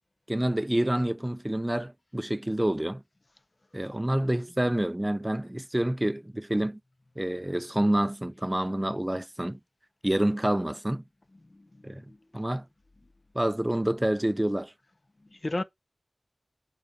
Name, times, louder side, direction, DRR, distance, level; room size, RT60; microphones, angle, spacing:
voice 1, 0.3-3.0 3.7-6.8 7.2-9.6 10.0-11.0 11.8-12.0 12.3-12.7 13.3-14.7, right 1 dB, 20° right, 0.3 m, -28 dB
voice 2, 11.5-12.4 15.2-15.6, left 2 dB, 55° left, 0.4 m, -36 dB
3.8 x 3.6 x 3.4 m
wide cardioid pair, 60°, 0 cm